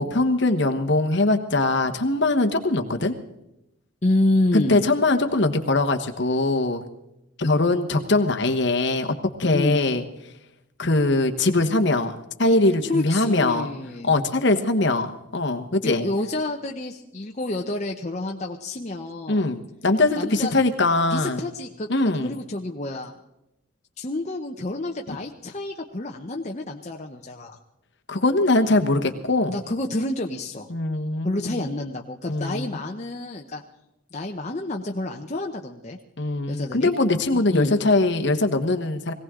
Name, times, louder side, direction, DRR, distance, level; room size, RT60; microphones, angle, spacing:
voice 1, 0.0-3.1 4.5-6.9 7.4-9.1 9.4-10.0 10.8-13.7 14.0-16.0 19.3-21.4 21.9-22.3 25.1-25.2 28.1-29.5 30.7-31.6 32.3-32.7 36.2-39.1, left 2 dB, 55° left, 6 dB, 1.2 m, -22 dB
voice 2, 4.0-4.8 9.5-9.8 12.9-14.2 15.8-19.5 20.2-20.6 21.1-23.1 24.0-27.6 29.5-30.7 31.2-33.6 34.1-36.0 36.5-36.9 37.3-37.7, left 2 dB, 35° left, 1 dB, 0.8 m, -28 dB
21.5 x 16.5 x 3.7 m, 0.89 s
head